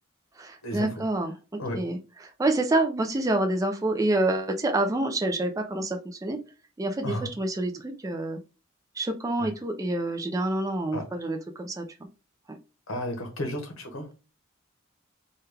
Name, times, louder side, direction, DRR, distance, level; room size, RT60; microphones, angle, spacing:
voice 1, 0.4-1.3 1.7-2.0 2.4-6.4 6.8-8.4 9.0-11.8 12.5-12.6, right 2 dB, 15° right, 4 dB, 0.3 m, -27 dB
voice 2, 12.9-14.1, left 1 dB, 70° left, 4 dB, 1.0 m, -32 dB
3.2 x 2.3 x 3.3 m, 0.32 s
head